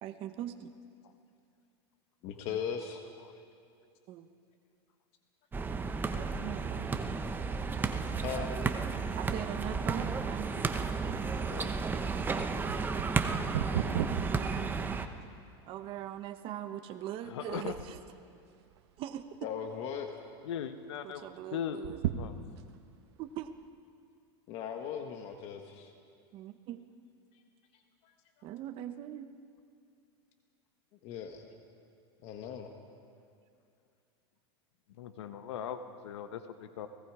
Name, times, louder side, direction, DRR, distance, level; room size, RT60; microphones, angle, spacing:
voice 1, 0.0-0.7 2.5-2.6 4.1-4.3 6.2-7.1 9.1-10.7 13.7-14.9 15.7-18.0 19.0-19.2 21.0-22.0 23.2-23.5 26.3-26.8 28.4-29.3, right 11 dB, 40° right, 8 dB, 1.0 m, -41 dB
voice 2, 2.2-3.0 8.2-8.5 11.4-11.7 19.4-20.1 24.5-25.9 27.7-28.1 28.4-28.5 31.0-31.5 32.2-32.7, left 8 dB, 45° left, 4 dB, 1.6 m, -39 dB
sound 1, 5.5-15.1, right 4 dB, 15° right, 0.9 m, -33 dB
sound 2, 11.1-15.5 16.1-16.2 16.9-17.2 17.5-18.1 18.7-19.4 19.7-19.8 20.1-20.2 21.7-22.8 23.4-23.5, right 11 dB, 70° right, 1.2 m, -37 dB
voice 3, 17.3-17.7 20.4-21.3 21.5-21.8 22.2-22.3 35.0-36.9, left 9 dB, 85° left, 9 dB, 1.2 m, -39 dB
29.5 x 18.5 x 4.9 m, 2.4 s
supercardioid pair, 140°, 14 cm